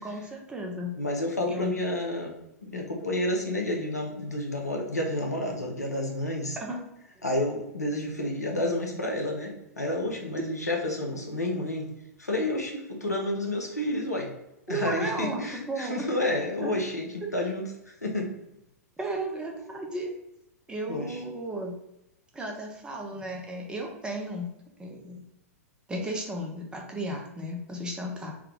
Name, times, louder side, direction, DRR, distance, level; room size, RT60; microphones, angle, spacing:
voice 1, 0.0-0.9 1.5-1.8 6.6-6.8 14.7-15.4 15.7-16.0 16.6-16.7 17.3-17.4 19.0-20.1 20.7-21.8 22.3-24.5 24.8-25.2 25.9-28.3, right 1 dB, 10° right, 1 dB, 0.5 m, -34 dB
voice 2, 1.0-2.3 2.6-6.6 7.2-11.9 12.2-14.3 14.7-17.7 18.0-18.3 20.9-21.2, left 1 dB, 85° left, 0 dB, 0.8 m, -30 dB
3.5 x 2.2 x 3.7 m, 0.86 s
figure-of-eight pair, 100°, 9 cm